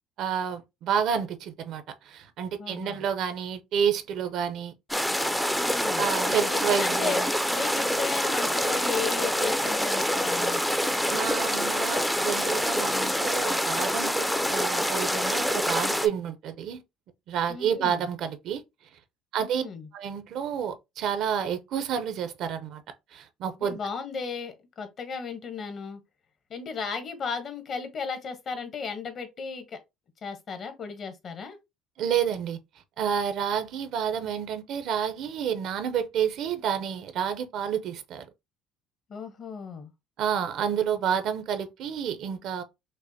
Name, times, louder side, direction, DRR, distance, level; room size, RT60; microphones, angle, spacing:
voice 1, 0.2-4.7 6.0-7.3 11.1-16.8 17.3-18.6 19.3-19.6 19.9-22.8 23.1-23.8 32.0-32.6 33.0-38.2 40.2-42.6, right 8 dB, 65° right, 0.6 m, -29 dB
voice 2, 2.6-3.0 5.5-6.0 6.5-7.2 7.5-10.6 17.5-18.1 19.4-19.9 23.6-26.0 26.5-29.8 30.2-31.6 39.1-39.9, left 5 dB, 50° left, 1.0 m, -35 dB
sound 1, 4.9-16.1, equal, 5° left, 0.4 m, -26 dB
5.2 x 2.1 x 2.7 m
cardioid pair, 110°, 0 cm